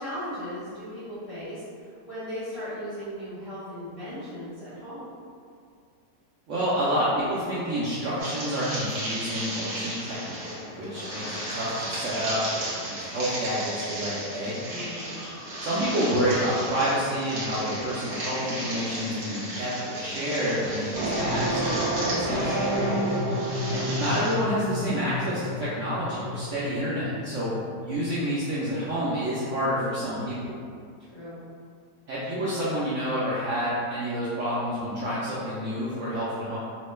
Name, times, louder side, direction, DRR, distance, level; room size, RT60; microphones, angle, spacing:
voice 1, 0.0-5.1 14.7-15.2 22.6-23.0 31.0-31.4, equal, 50° left, -12 dB, 0.4 m, -37 dB
voice 2, 6.5-10.5 10.8-14.6 15.6-22.6 23.7-27.6 27.8-30.6 32.1-36.6, equal, 75° right, -9 dB, 0.7 m, -29 dB
sound 1, 8.2-24.3, right 1 dB, 55° right, 1.2 m, -35 dB
sound 2, 20.9-27.9, equal, 35° right, 1.2 m, -30 dB
3.0 x 2.1 x 3.1 m, 2.2 s
omnidirectional pair, 1.9 m